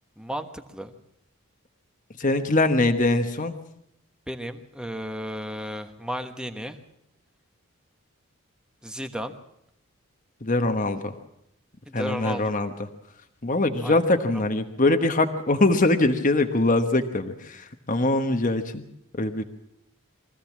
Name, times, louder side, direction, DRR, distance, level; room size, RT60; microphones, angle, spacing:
voice 1, 0.2-0.9 4.3-6.8 8.8-9.3 11.9-12.5 13.8-14.0, equal, 5° right, 7 dB, 1.2 m, -34 dB
voice 2, 2.2-3.6 10.4-11.2 11.9-12.7 13.4-18.8 19.1-19.4, left 2 dB, 35° left, 6 dB, 1.2 m, -23 dB
24.0 x 15.5 x 7.4 m, 0.77 s
head